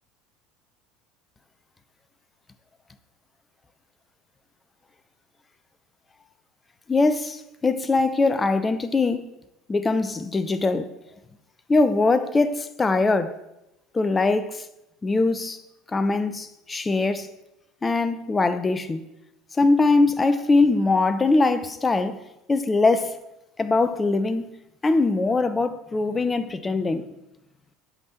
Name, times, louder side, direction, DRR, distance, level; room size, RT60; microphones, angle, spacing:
voice 1, 6.9-9.3 9.7-10.9 11.7-13.4 13.9-14.7 15.0-15.6 15.9-17.3 17.8-19.0 19.5-22.2 22.5-23.2 23.6-24.5 24.8-27.1, left 3 dB, 20° left, 0.8 m, -22 dB
8.2 x 5.6 x 7.4 m
hypercardioid pair, 75°, 0 cm